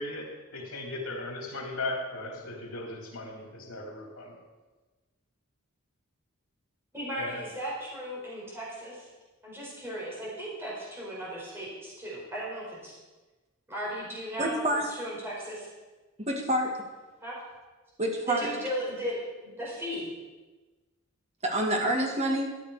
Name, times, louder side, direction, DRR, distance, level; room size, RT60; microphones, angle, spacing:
voice 1, 0.0-4.4 7.2-7.4, left 2 dB, 90° left, 0 dB, 2.9 m, -37 dB
voice 2, 6.9-9.1 9.4-12.9 13.7-14.6 14.9-15.7 17.2-17.3 18.3-20.1, equal, 10° right, -6 dB, 4.9 m, -36 dB
voice 3, 14.4-14.9 16.2-16.8 18.0-18.5 21.4-22.5, right 1 dB, 30° right, 1 dB, 2.0 m, -27 dB
13.5 x 10.5 x 5.0 m, 1.2 s
head